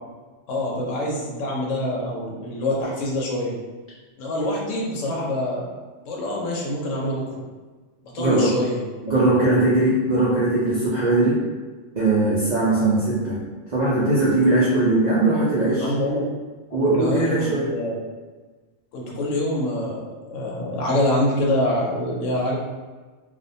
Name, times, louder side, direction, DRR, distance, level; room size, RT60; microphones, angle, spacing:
voice 1, 0.5-3.5 4.2-5.7 6.0-7.4 8.1-8.8 9.2-9.5 15.8-16.2 16.7-18.0 18.9-22.6, left 1 dB, 80° left, -3 dB, 0.9 m, -25 dB
voice 2, 8.2-8.5 9.0-11.4 12.0-13.4 13.7-15.9 16.7-17.7, right 2 dB, 70° right, -7 dB, 0.4 m, -20 dB
2.4 x 2.1 x 2.6 m, 1.3 s
omnidirectional pair, 1.3 m